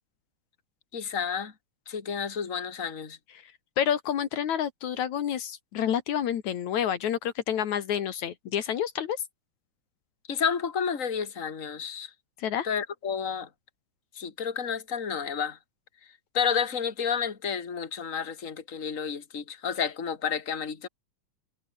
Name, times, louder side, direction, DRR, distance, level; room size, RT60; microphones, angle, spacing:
voice 1, 0.9-1.5 1.9-3.2 10.3-12.1 12.6-13.5 14.1-15.6 16.3-20.9, left 7 dB, 25° left, 2.7 m, -30 dB
voice 2, 3.8-9.2 12.4-12.7, left 9 dB, 75° left, 3.0 m, -29 dB
omnidirectional pair, 3.4 m